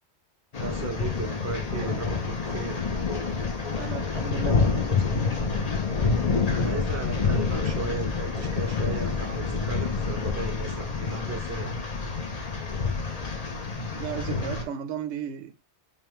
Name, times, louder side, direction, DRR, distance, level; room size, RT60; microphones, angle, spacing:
sound 1, 0.5-14.6, left 4 dB, 40° left, 0.7 m, -28 dB
voice 1, 0.6-2.8 6.5-11.7, right 4 dB, 25° right, 0.4 m, -36 dB
voice 2, 3.7-5.4 13.9-15.6, right 8 dB, 90° right, 0.9 m, -35 dB
5.2 x 2.3 x 3.0 m
omnidirectional pair, 1.1 m